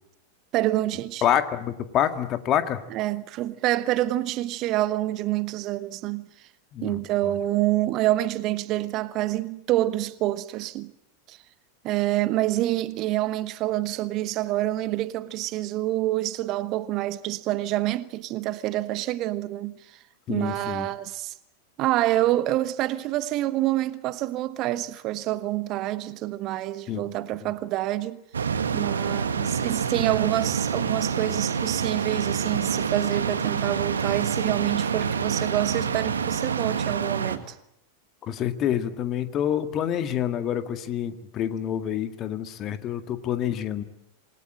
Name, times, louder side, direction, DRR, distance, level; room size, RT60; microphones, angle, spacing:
voice 1, 0.5-1.2 2.9-6.5 6.8-10.9 11.3-11.4 11.8-20.0 20.3-21.3 21.8-28.2 28.7-37.6, right 15 dB, 40° right, 1.1 m, -27 dB
voice 2, 1.2-2.8 6.7-7.3 20.3-20.9 26.9-27.1 27.4-27.5 38.2-43.8, left 10 dB, 35° left, 1.9 m, -27 dB
sound 1, 28.3-37.4, right 6 dB, 70° right, 1.8 m, -27 dB
27.5 x 20.0 x 9.0 m
figure-of-eight pair, 90°, 0 cm